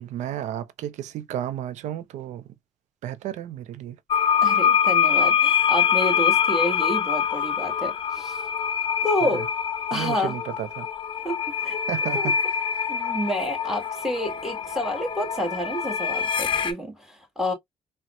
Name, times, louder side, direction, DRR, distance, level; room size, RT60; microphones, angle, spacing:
voice 1, 0.0-2.4 3.0-4.0 9.3-9.4 9.9-10.9 11.9-12.4, right 11 dB, 65° right, 0.5 m, -32 dB
sound 1, 4.1-16.7, left 8 dB, 40° left, 0.6 m, -24 dB
voice 2, 4.4-8.4 9.0-9.4 9.9-10.3 11.2-12.3 12.9-17.5, equal, 5° right, 1.5 m, -29 dB
4.0 x 2.1 x 2.3 m
hypercardioid pair, 55°, 13 cm